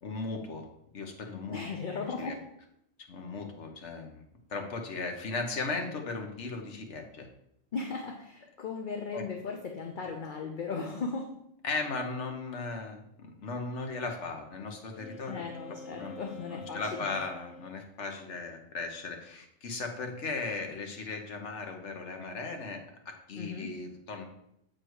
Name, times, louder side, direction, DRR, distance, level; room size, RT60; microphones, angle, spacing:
voice 1, 0.0-0.7 0.9-1.6 2.2-2.4 3.1-4.2 4.5-7.3 9.1-9.2 11.6-15.4 16.0-24.3, left 3 dB, 65° left, 3 dB, 1.3 m, -37 dB
voice 2, 1.5-2.4 7.7-11.3 15.3-17.1 23.4-23.7, left 4 dB, 50° left, 2 dB, 0.7 m, -37 dB
Wind instrument woodwind instrument, 14.9-17.8, left 2 dB, 90° left, 1.1 m, -47 dB
7.9 x 4.3 x 4.6 m, 0.77 s
omnidirectional pair, 1.3 m